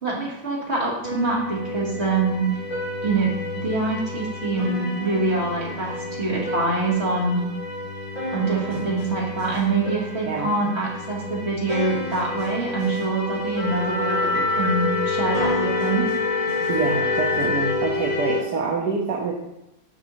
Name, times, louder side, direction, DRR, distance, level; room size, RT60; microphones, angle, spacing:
voice 1, 0.0-2.4 3.0-3.3 3.6-7.4 8.3-16.1, right 3 dB, 40° right, -3 dB, 1.7 m, -25 dB
sound 1, 1.0-18.4, left 1 dB, 30° left, 2.1 m, -30 dB
Wind instrument woodwind instrument, 13.5-17.8, left 4 dB, 45° left, 2.8 m, -25 dB
voice 2, 16.7-19.3, right 4 dB, 70° right, -2 dB, 1.4 m, -26 dB
7.3 x 5.3 x 3.0 m, 0.89 s
omnidirectional pair, 1.9 m